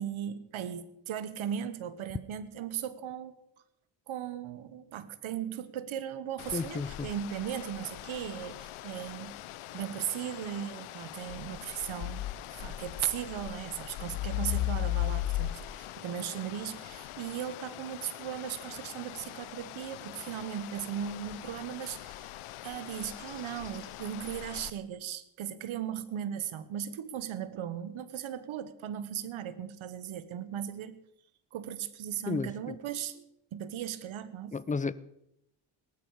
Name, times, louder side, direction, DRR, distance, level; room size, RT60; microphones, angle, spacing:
voice 1, 0.0-3.3 4.1-9.4 9.7-22.3 22.6-31.0 31.5-33.3 33.5-34.6, right 10 dB, 75° right, 1.3 m, -37 dB
sound 1, 6.4-24.7, left 15 dB, 85° left, 0.8 m, -39 dB
voice 2, 6.5-6.9 32.3-32.8 34.5-34.9, left 4 dB, 15° left, 0.6 m, -32 dB
sound 2, 19.2-24.4, left 6 dB, 65° left, 3.4 m, -61 dB
18.5 x 13.0 x 4.9 m
cardioid pair, 85°, 49 cm